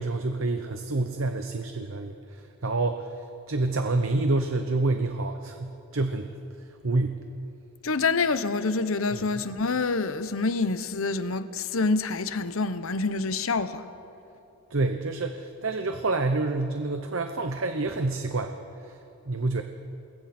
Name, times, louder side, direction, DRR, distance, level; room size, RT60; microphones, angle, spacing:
voice 1, 0.0-3.0 3.5-6.3 6.8-7.2 9.1-9.4 14.7-18.5 18.8-19.0 19.3-19.6, right 2 dB, 70° right, 0.9 m, -28 dB
voice 2, 7.8-13.8, left 3 dB, 75° left, 0.9 m, -27 dB
28.0 x 21.5 x 4.3 m
head